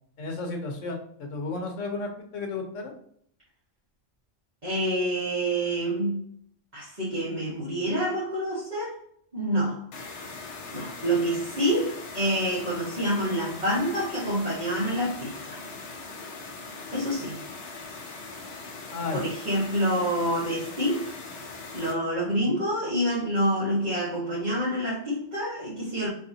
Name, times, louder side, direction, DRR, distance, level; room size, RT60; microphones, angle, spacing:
voice 1, 0.2-2.9 18.9-19.2 22.5-22.6, left 3 dB, 85° left, 3 dB, 1.2 m, -33 dB
voice 2, 4.6-6.2 6.7-9.0 9.3-9.9 10.7-15.6 16.9-17.4 19.1-21.2 21.7-26.1, equal, 35° right, -10 dB, 1.6 m, -27 dB
sound 1, 9.9-21.9, left 3 dB, 65° left, 1.0 m, -40 dB
4.6 x 3.3 x 2.7 m, 0.67 s
omnidirectional pair, 1.3 m